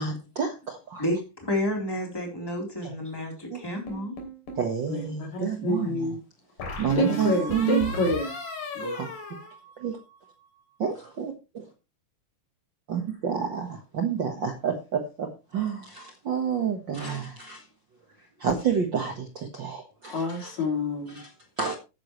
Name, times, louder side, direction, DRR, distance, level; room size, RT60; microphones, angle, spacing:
voice 1, 0.0-1.0 3.5-3.6 4.6-6.1 6.8-7.9 8.9-9.1 9.8-10.0 10.8-11.6 12.9-17.6 18.4-20.5 21.1-21.3 21.6-21.7, right 7 dB, 45° right, 1.6 m, -29 dB
voice 2, 1.0-4.1, left 1 dB, 5° left, 3.5 m, -30 dB
sound 1, 3.9-4.7 6.6-10.2, left 2 dB, 85° left, 4.6 m, -36 dB
voice 3, 4.9-6.2 7.0-8.3 8.8-9.0 20.1-21.2, left 2 dB, 60° left, 4.4 m, -28 dB
13.0 x 9.9 x 3.2 m
omnidirectional pair, 3.7 m